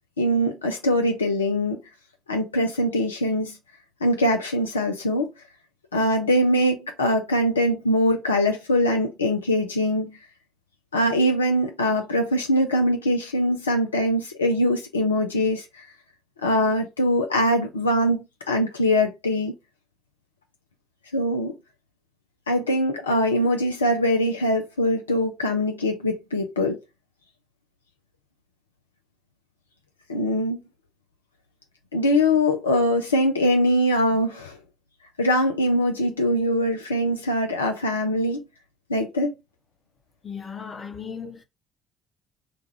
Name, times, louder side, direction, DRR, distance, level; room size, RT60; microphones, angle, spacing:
voice 1, 0.2-1.8 2.3-3.6 4.0-5.3 5.9-10.1 10.9-15.9 16.4-19.5 21.1-21.5 22.5-26.8 30.1-30.6 31.9-34.6 35.2-38.4 38.9-39.3, left 1 dB, 85° left, 0.4 m, -22 dB
voice 2, 40.2-41.4, left 6 dB, 40° left, 0.9 m, -36 dB
3.3 x 2.2 x 3.3 m
figure-of-eight pair, 45°, 0 cm